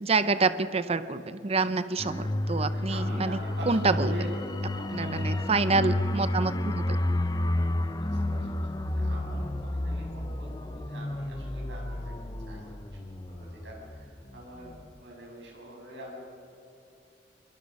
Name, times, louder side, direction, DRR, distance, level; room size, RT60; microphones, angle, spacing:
voice 1, 0.0-3.4 3.7-4.3 4.9-7.0, right 3 dB, 35° right, 12 dB, 0.6 m, -27 dB
sound 1, 2.0-14.3 14.6-14.8, left 1 dB, 25° left, 0.7 m, -31 dB
voice 2, 2.7-4.3 4.7-6.0 8.0-12.1 12.5-12.7 13.3-14.7 15.0-16.2, equal, 75° right, -1 dB, 6.7 m, -44 dB
25.5 x 22.5 x 5.4 m, 2.7 s
head